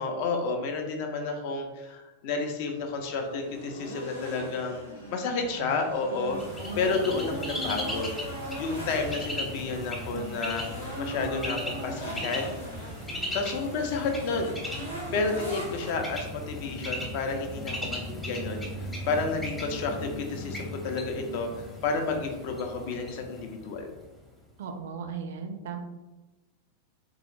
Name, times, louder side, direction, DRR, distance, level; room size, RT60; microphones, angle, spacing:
voice 1, 0.0-4.8 5.1-6.4 6.8-8.1 8.6-12.4 13.3-14.6 15.1-21.5 21.8-23.9, left 4 dB, 45° left, 4 dB, 0.5 m, -31 dB
sound 1, 2.7-15.9, equal, 90° left, 1.1 m, -40 dB
Bird, 6.3-24.1, equal, 10° left, 0.7 m, -37 dB
voice 2, 24.6-25.8, right 6 dB, 60° right, 6 dB, 0.4 m, -36 dB
3.6 x 2.3 x 3.0 m, 1.1 s
figure-of-eight pair, 90°, 0 cm